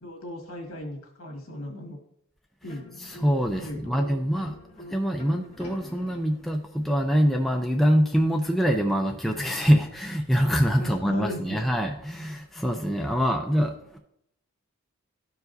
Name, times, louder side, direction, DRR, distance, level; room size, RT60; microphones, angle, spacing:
voice 1, 0.0-2.0 2.6-2.8 3.6-4.0 10.8-11.6 13.0-13.2, left 1 dB, 70° left, 0 dB, 1.6 m, -36 dB
sound 1, 2.6-6.6, left 1 dB, 30° left, 1.9 m, -46 dB
voice 2, 3.0-4.6 4.9-14.0, equal, ahead, 2 dB, 0.4 m, -24 dB
12.0 x 4.8 x 2.6 m, 0.75 s
head